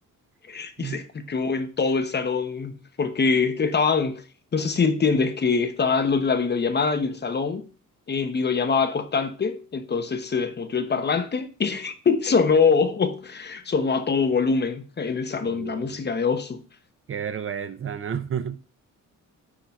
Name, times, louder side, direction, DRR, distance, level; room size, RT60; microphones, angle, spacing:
voice 1, 0.5-4.2 4.5-7.7 8.1-16.6, left 5 dB, 30° left, 1.0 m, -24 dB
voice 2, 15.4-16.0 17.1-18.6, right 8 dB, 40° right, 0.7 m, -31 dB
9.9 x 4.0 x 5.7 m
wide cardioid pair, 165°, 33 cm